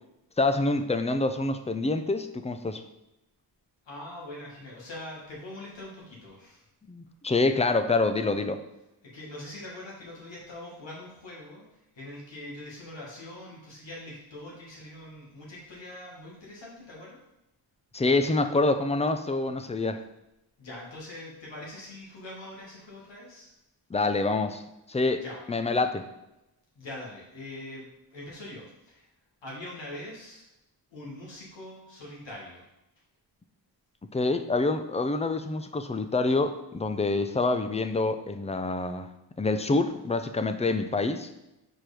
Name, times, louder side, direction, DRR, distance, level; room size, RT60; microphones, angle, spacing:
voice 1, 0.4-2.8 6.9-8.6 17.9-20.0 23.9-24.6 24.9-25.2 25.5-26.1 34.1-39.1 39.4-41.3, left 3 dB, 15° left, 9 dB, 0.5 m, -26 dB
voice 2, 3.9-6.6 9.0-17.2 20.6-23.5 25.2-25.4 26.8-29.1 29.4-30.5 30.9-32.7, left 1 dB, 75° left, -4 dB, 1.8 m, -43 dB
4.7 x 4.5 x 4.9 m, 0.91 s
cardioid pair, 50°, 45 cm